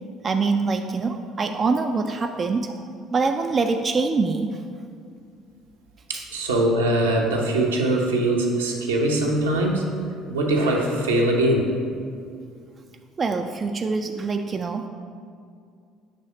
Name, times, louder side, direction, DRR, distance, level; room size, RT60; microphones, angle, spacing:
voice 1, 0.2-2.7 3.1-4.6 6.1-6.3 13.2-14.9, right 4 dB, 35° right, 5 dB, 0.3 m, -24 dB
voice 2, 6.1-9.8 10.3-11.7, right 1 dB, 80° right, -1 dB, 0.8 m, -22 dB
6.5 x 3.4 x 5.3 m, 2.3 s
figure-of-eight pair, 55°, 0 cm